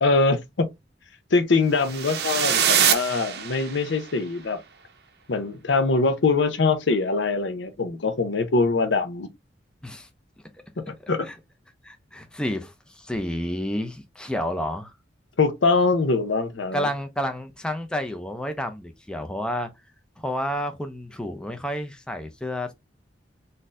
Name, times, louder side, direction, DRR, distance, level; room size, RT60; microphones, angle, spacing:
voice 1, 0.0-0.7 1.3-4.6 5.3-9.3 11.1-11.3 15.4-16.9, left 3 dB, 80° left, 0.6 m, -23 dB
sound 1, 1.8-4.0, right 8 dB, 60° right, 0.6 m, -24 dB
voice 2, 11.8-14.9 16.7-19.7 20.2-22.7, equal, 5° left, 0.4 m, -30 dB
3.9 x 2.6 x 2.4 m
head